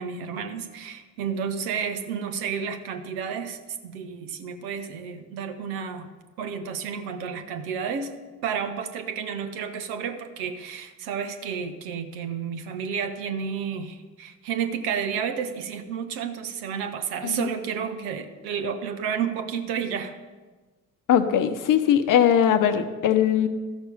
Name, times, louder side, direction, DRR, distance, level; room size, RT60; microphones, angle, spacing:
voice 1, 0.0-6.1 6.4-8.1 8.4-20.1, right 7 dB, 60° right, 8 dB, 1.0 m, -31 dB
voice 2, 21.1-23.5, left 9 dB, 45° left, 10 dB, 0.9 m, -20 dB
13.5 x 6.1 x 5.3 m, 1.3 s
figure-of-eight pair, 45°, 42 cm